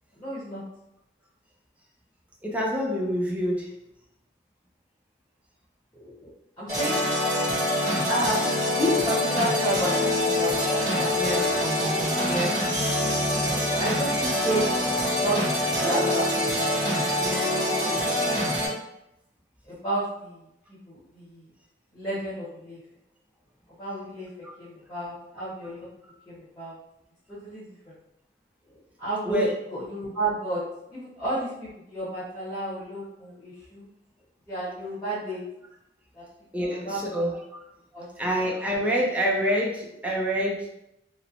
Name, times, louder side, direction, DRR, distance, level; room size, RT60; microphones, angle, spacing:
voice 1, 0.1-0.6 5.9-6.1 6.6-7.0 8.0-11.5 13.4-15.4 15.8-16.6 16.9-18.5 19.6-21.5 21.9-22.8 23.8-24.3 24.6-25.9 26.3-26.8 27.3-27.9 29.0-29.4 29.7-30.6 30.9-33.9 34.5-35.4 36.1-36.2 36.5-37.0 37.9-38.1, right 1 dB, 10° left, -11 dB, 1.1 m, -32 dB
voice 2, 2.4-3.7 11.2-11.5 12.3-12.8 24.4-24.5 26.0-26.1 29.3-29.5 36.5-37.4 38.2-40.7, equal, 10° right, -2 dB, 0.4 m, -27 dB
sound 1, 6.7-18.7, left 1 dB, 45° right, 1.2 m, -25 dB
2.9 x 2.1 x 2.5 m, 0.83 s
head